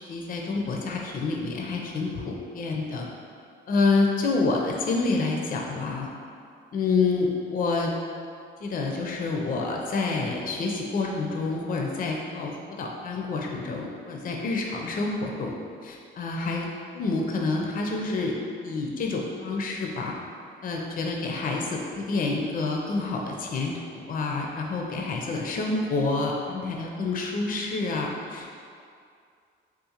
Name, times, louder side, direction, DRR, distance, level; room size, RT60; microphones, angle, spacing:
voice 1, 0.0-3.1 3.7-6.1 6.7-7.9 8.6-15.6 15.8-16.7 16.9-18.3 18.6-20.1 20.6-28.6, left 3 dB, 45° left, 0 dB, 0.5 m, -28 dB
3.6 x 2.5 x 2.8 m, 2.3 s
cardioid pair, 90°, 20 cm